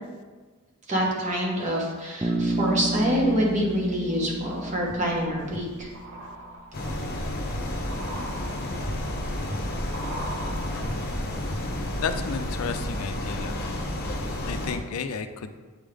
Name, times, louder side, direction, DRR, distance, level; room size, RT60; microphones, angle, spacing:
voice 1, 0.9-5.9, equal, 35° right, -3 dB, 1.4 m, -26 dB
Bass guitar, 2.2-6.3, right 1 dB, 15° right, 0.3 m, -30 dB
sound 1, 3.2-3.6 4.1-12.0 12.2-12.3, equal, 70° right, 1.1 m, -39 dB
sound 2, 6.7-14.8, left 1 dB, 45° left, 0.8 m, -31 dB
voice 2, 12.0-13.6 14.4-15.6, left 5 dB, 80° left, 9 dB, 0.4 m, -32 dB
8.1 x 3.6 x 3.4 m, 1.4 s
head